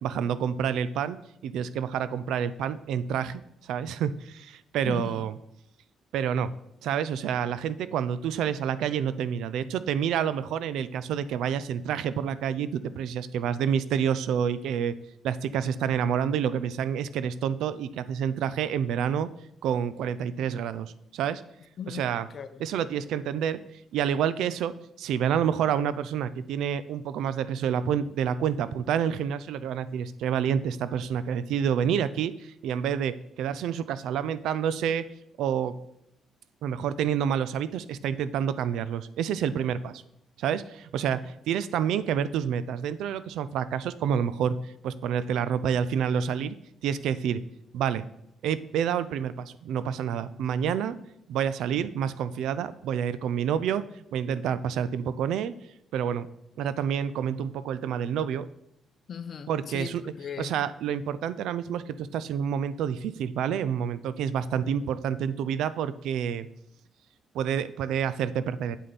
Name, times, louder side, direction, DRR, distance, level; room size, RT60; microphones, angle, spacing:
voice 1, 0.0-1.2 1.4-5.3 6.1-6.5 6.8-14.9 15.2-19.3 19.6-21.4 21.9-22.3 22.6-23.6 23.9-24.7 25.0-35.0 35.4-35.7 36.6-40.0 40.4-46.6 46.8-47.4 47.7-48.1 48.4-51.0 51.3-55.5 55.9-56.3 56.6-58.5 59.5-60.0 60.4-66.5 67.3-68.8, right 8 dB, 85° right, 15 dB, 0.5 m, -28 dB
voice 2, 4.8-5.3 21.8-22.6 59.1-60.6, left 7 dB, 50° left, 12 dB, 0.7 m, -38 dB
8.2 x 7.7 x 4.1 m, 0.81 s
cardioid pair, 90°, 0 cm